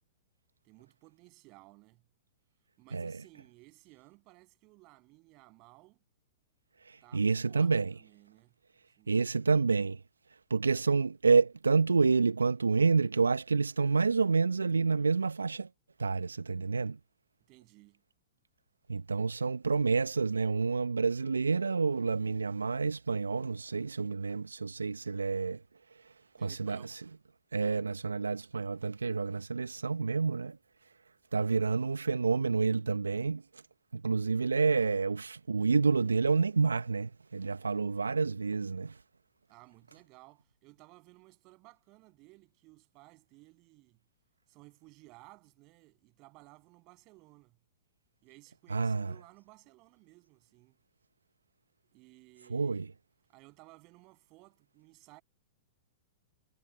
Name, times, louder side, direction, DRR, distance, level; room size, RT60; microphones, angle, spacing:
voice 1, 0.6-2.0 2.8-6.0 7.0-8.5 9.0-9.2 17.5-18.0 26.4-27.0 39.5-44.0 44.5-47.6 48.2-50.8 51.9-52.9 53.3-55.2, right 24 dB, 40° right, 7.7 m, -58 dB
voice 2, 6.9-7.9 9.1-10.0 10.5-15.7 16.0-17.0 18.9-25.6 26.4-27.0 27.5-30.6 31.3-33.4 33.9-38.9 48.7-49.1 52.5-52.9, right 4 dB, 85° right, 0.8 m, -28 dB
figure-of-eight pair, 105°, 0 cm